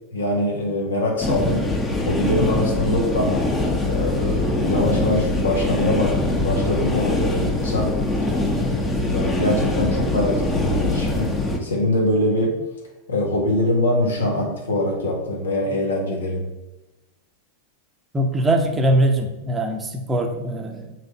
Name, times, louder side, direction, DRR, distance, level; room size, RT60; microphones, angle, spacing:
voice 1, 0.1-1.7 2.0-3.5 3.8-8.0 8.5-11.4 11.6-12.6 13.1-16.5, left 1 dB, 70° left, 0 dB, 1.5 m, -23 dB
sound 1, 1.2-11.6, left 2 dB, 15° left, 1.0 m, -23 dB
voice 2, 18.1-20.9, right 1 dB, 15° right, 4 dB, 0.9 m, -21 dB
6.3 x 3.5 x 5.5 m, 0.99 s
figure-of-eight pair, 90°, 0 cm